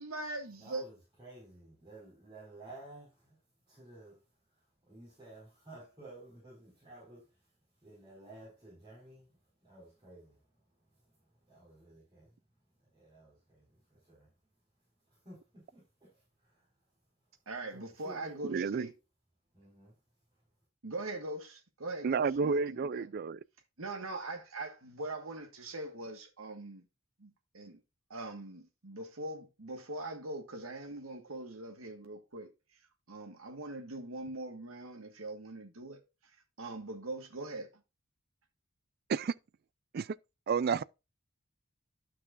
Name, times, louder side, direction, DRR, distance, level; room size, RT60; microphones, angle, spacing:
voice 1, 0.0-0.8 17.5-18.9 20.8-23.1 23.8-26.9 27.2-27.8 28.1-32.8 33.1-37.8, right 2 dB, 85° right, 1.5 m, -42 dB
voice 2, 0.6-3.4 3.7-7.5 7.8-10.5 11.5-12.4 12.8-14.3 15.1-16.7 17.7-18.5 19.5-20.0, right 2 dB, 20° right, 5.2 m, -54 dB
voice 3, 18.5-18.9 22.0-23.4 39.1-39.3 39.9-40.1 40.5-40.8, right 5 dB, 50° right, 0.4 m, -30 dB
12.5 x 6.0 x 2.5 m
head